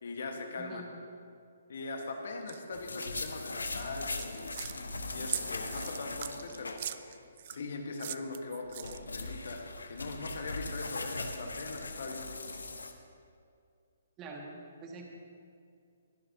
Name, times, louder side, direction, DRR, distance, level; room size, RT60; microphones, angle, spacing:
voice 1, 0.0-0.8 1.7-4.6 5.1-6.8 7.5-12.4, left 3 dB, 60° left, 3 dB, 1.5 m, -41 dB
sound 1, 2.5-2.6 3.0-3.3 4.0-4.8 5.3-7.6 8.0-9.2, right 11 dB, 45° right, 0.4 m, -40 dB
sound 2, 2.7-7.2 7.5-7.6 8.5-12.9, left 3 dB, 80° left, 1.0 m, -40 dB
voice 2, 14.2-15.1, right 3 dB, 25° right, 0 dB, 2.0 m, -45 dB
21.0 x 10.5 x 2.9 m, 2.4 s
figure-of-eight pair, 135°, 0 cm